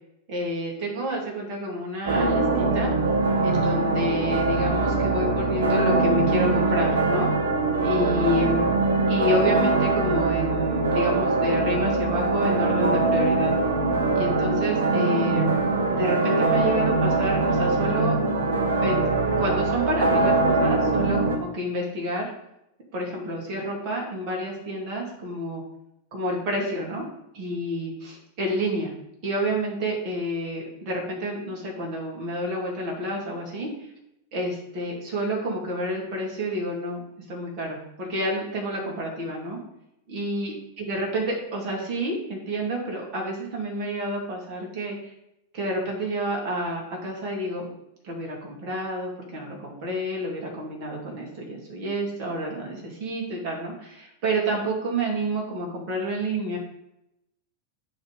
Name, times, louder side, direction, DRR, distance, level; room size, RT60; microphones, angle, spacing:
voice 1, 0.3-2.9 3.4-7.3 7.8-8.7 9.1-13.5 14.1-15.6 15.9-18.2 18.8-19.0 19.4-22.3 22.9-25.6 26.1-27.0 27.3-28.9 29.2-33.7 34.3-39.6 40.1-45.1 45.5-47.7 48.0-56.6, equal, 40° right, -2 dB, 2.4 m, -29 dB
sound 1, 2.1-21.4, right 3 dB, 65° right, 0.9 m, -22 dB
10.0 x 3.4 x 5.0 m, 0.86 s
figure-of-eight pair, 90°, 0 cm